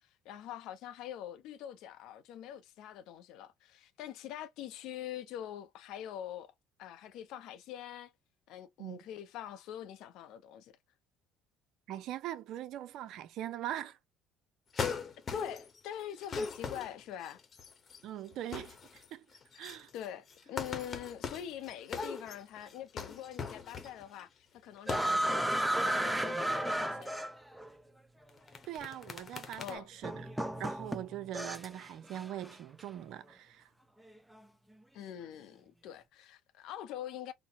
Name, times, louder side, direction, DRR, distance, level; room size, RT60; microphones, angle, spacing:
voice 1, 0.0-6.5 6.8-8.1 8.5-10.7 15.3-17.4 19.5-19.7 19.9-25.4 25.7-27.1 29.6-29.9 34.9-37.3, left 11 dB, 70° left, 0.6 m, -44 dB
voice 2, 11.9-14.0 18.0-19.3 19.6-19.9 28.7-30.3 30.6-33.7, right 12 dB, 65° right, 0.5 m, -41 dB
sound 1, 14.7-15.8 16.1-18.0 18.3-19.1 19.3-24.2 24.8-25.2 25.5-25.9 28.3-29.7, left 5 dB, 40° left, 0.9 m, -40 dB
sound 2, 24.9-27.7 28.8-28.9 30.0-31.8 32.1-32.5, right 1 dB, 5° right, 0.6 m, -33 dB
3.9 x 2.0 x 2.8 m
supercardioid pair, 75°, 0 cm